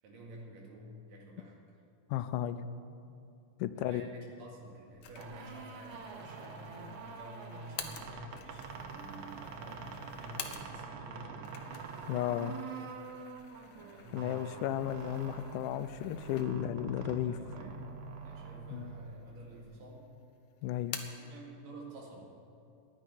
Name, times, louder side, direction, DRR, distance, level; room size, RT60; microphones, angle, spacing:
voice 1, 0.0-1.6 3.8-11.5 13.5-14.4 17.2-17.7 18.1-20.2 21.2-22.4, right 1 dB, 90° right, -1 dB, 3.8 m, -50 dB
voice 2, 2.1-2.6 3.6-4.1 12.1-12.6 14.1-17.4 18.7-18.9 20.6-21.0, left 12 dB, 80° left, 12 dB, 2.1 m, -34 dB
sound 1, 5.0-11.0 11.3-16.8 17.2-17.3 18.2-18.8 19.1-19.9 20.2-21.3, left 8 dB, 65° left, 1.6 m, -49 dB
sound 2, 5.0-19.6, right 5 dB, 70° right, 2.2 m, -46 dB
10.0 x 9.9 x 9.8 m, 2.6 s
omnidirectional pair, 3.7 m